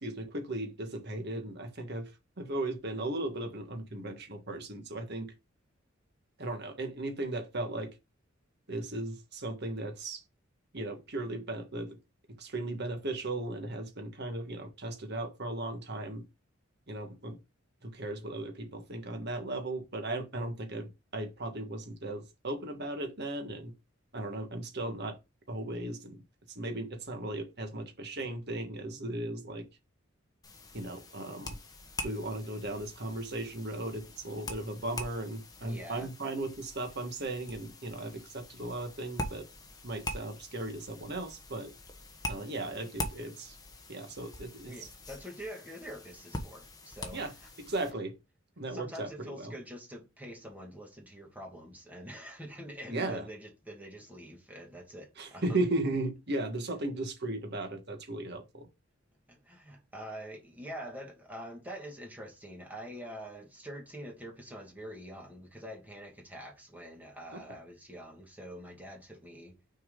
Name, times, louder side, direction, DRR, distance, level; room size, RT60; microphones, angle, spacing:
voice 1, 0.0-2.1 2.4-5.3 6.4-7.9 8.7-10.2 10.7-12.0 12.4-16.2 16.9-17.4 17.8-23.7 24.1-25.2 25.5-26.2 26.5-29.7 30.7-31.6 32.0-39.5 39.8-41.7 42.3-43.6 43.9-44.9 47.1-47.3 47.6-48.2 48.6-49.5 52.9-53.3 55.2-58.7 67.3-67.4, right 2 dB, 55° right, 1.7 m, -36 dB
sound 1, 30.4-47.9, left 1 dB, 20° left, 1.1 m, -44 dB
voice 2, 35.6-36.1 44.6-47.5 48.7-55.4 59.3-69.6, equal, 10° right, 2.2 m, -45 dB
6.4 x 4.6 x 3.8 m
head